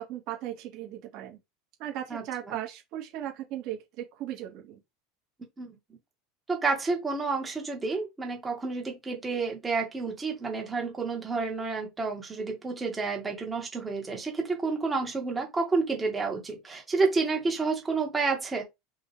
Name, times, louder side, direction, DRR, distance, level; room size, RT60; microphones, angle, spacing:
voice 1, 0.0-1.4 1.8-4.8, right 12 dB, 45° right, 1.9 m, -37 dB
voice 2, 2.1-2.6 5.6-5.7 6.5-18.6, right 4 dB, 10° right, 1.5 m, -30 dB
5.4 x 2.8 x 3.3 m
supercardioid pair, 170°, 0 cm